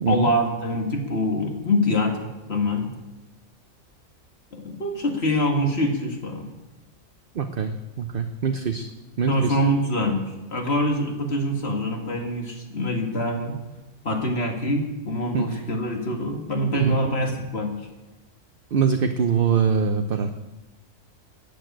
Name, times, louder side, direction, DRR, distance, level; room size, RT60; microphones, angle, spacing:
voice 1, 0.1-2.9 4.5-6.5 9.3-10.2 10.5-13.6 14.0-17.7, left 1 dB, 50° left, 2 dB, 2.4 m, -25 dB
voice 2, 7.3-8.9 9.2-9.6 15.3-15.5 16.7-17.0 18.7-20.3, right 6 dB, 45° right, 6 dB, 0.9 m, -23 dB
13.0 x 8.6 x 9.0 m, 1.1 s
omnidirectional pair, 1.4 m